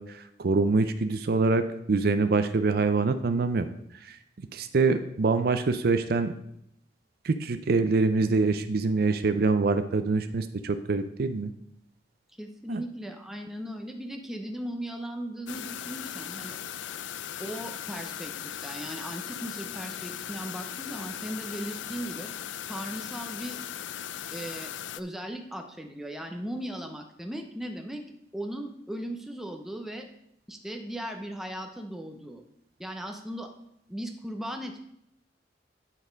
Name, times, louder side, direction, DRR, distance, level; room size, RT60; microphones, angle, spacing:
voice 1, 0.0-3.7 4.0-4.2 4.5-6.3 7.2-11.5 12.7-12.8, right 3 dB, 55° right, 10 dB, 0.4 m, -25 dB
voice 2, 12.4-16.6 17.4-22.3 22.7-23.6 24.3-28.1 28.3-30.1 30.5-32.4 32.8-33.5 33.9-34.8, right 1 dB, ahead, 4 dB, 0.7 m, -37 dB
sound 1, 15.5-25.0, left 10 dB, 90° left, 0.4 m, -38 dB
9.6 x 4.2 x 5.1 m, 0.75 s
head